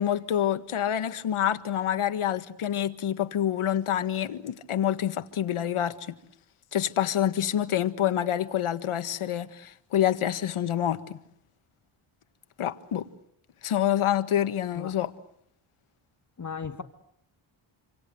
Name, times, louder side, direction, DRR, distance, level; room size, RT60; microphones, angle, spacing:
voice 1, 0.0-6.1 6.7-11.2 12.6-13.1 13.6-15.1, left 10 dB, 80° left, 1.7 m, -27 dB
voice 2, 16.4-16.8, left 6 dB, 35° left, 1.6 m, -36 dB
27.5 x 26.5 x 8.0 m
wide cardioid pair, 130°, 49 cm